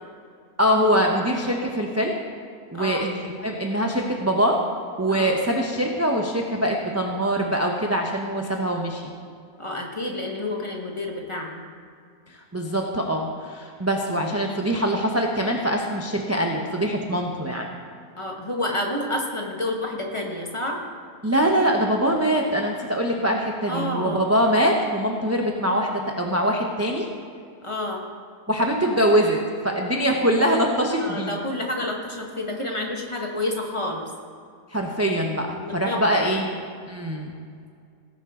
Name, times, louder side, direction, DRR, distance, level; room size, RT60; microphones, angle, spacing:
voice 1, 0.6-2.2 2.7-4.6 5.0-9.1 12.5-17.7 21.2-27.1 28.5-29.4 29.6-31.4 34.7-36.6 36.9-37.3, equal, 15° right, 0 dB, 0.6 m, -23 dB
voice 2, 9.6-11.6 18.2-20.8 23.7-24.2 27.6-28.0 31.0-34.0 35.6-36.4, left 1 dB, 20° left, 0 dB, 1.4 m, -29 dB
17.5 x 9.9 x 3.7 m, 2.2 s
omnidirectional pair, 1.6 m